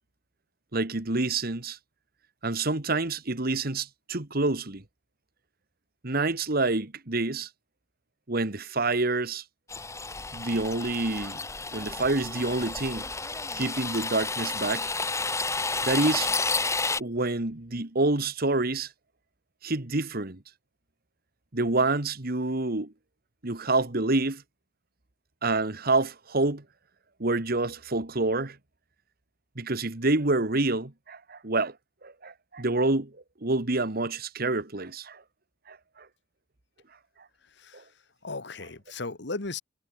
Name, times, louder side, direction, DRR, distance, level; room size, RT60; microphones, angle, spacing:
voice 1, 0.7-1.8 2.4-4.8 6.0-7.5 8.3-9.4 10.3-11.4 11.7-13.1 13.6-14.9 15.8-16.3 17.0-18.9 19.6-20.4 21.5-22.9 23.4-24.4 25.4-26.6 27.2-28.6 29.6-31.7 32.0-33.1 33.4-35.2 35.7-36.1 37.7-37.8, right 2 dB, 55° right, 1.8 m, -27 dB
sound 1, 9.7-17.0, left 3 dB, 15° left, 2.3 m, -31 dB
voice 2, 37.4-37.9 38.2-39.6, left 3 dB, 65° left, 1.7 m, -36 dB
head